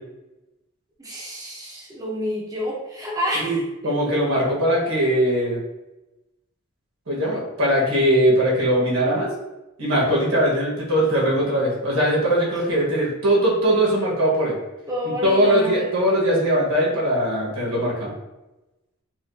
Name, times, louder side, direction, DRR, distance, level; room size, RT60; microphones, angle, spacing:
voice 1, 1.0-4.0 14.9-15.9, equal, 15° right, -5 dB, 0.6 m, -29 dB
voice 2, 3.8-5.6 7.1-9.3 9.8-14.6 15.2-18.1, equal, 75° right, -4 dB, 1.2 m, -20 dB
4.3 x 2.4 x 2.6 m, 0.99 s
head